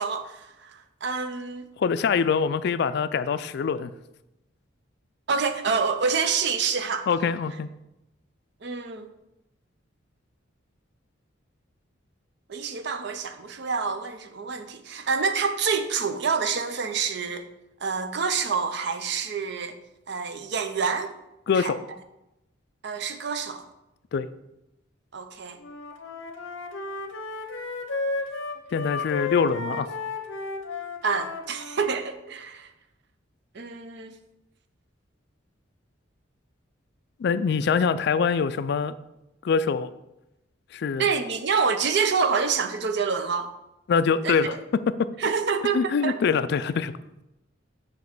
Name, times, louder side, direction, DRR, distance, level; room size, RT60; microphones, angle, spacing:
voice 1, 0.0-1.6 5.3-7.1 8.6-9.1 12.5-17.5 17.8-19.8 20.1-21.1 21.6-21.7 22.8-23.7 25.1-25.6 31.0-32.7 33.5-34.2 41.0-43.5 44.2-44.6 45.2-46.2, right 5 dB, 60° right, 9 dB, 0.6 m, -27 dB
voice 2, 1.8-3.9 7.1-7.7 21.5-21.8 24.1-24.3 28.7-29.9 37.2-38.9 39.4-39.9 40.7-41.1 43.9-44.6 45.0-45.1 45.7-46.9, left 5 dB, 55° left, 13 dB, 0.3 m, -24 dB
Wind instrument woodwind instrument, 25.6-31.9, left 3 dB, 80° left, 0.7 m, -33 dB
7.2 x 3.1 x 6.0 m, 0.91 s
head